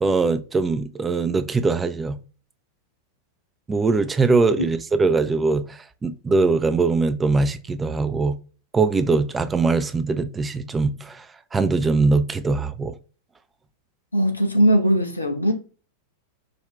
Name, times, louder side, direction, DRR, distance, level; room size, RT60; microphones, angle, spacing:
voice 1, 0.0-2.2 3.7-5.6 6.0-8.4 8.7-11.2 11.5-12.9, right 3 dB, 15° right, 0.4 m, -21 dB
voice 2, 14.1-15.5, equal, 85° left, 0.8 m, -19 dB
5.2 x 2.3 x 3.1 m
figure-of-eight pair, 90°, 0 cm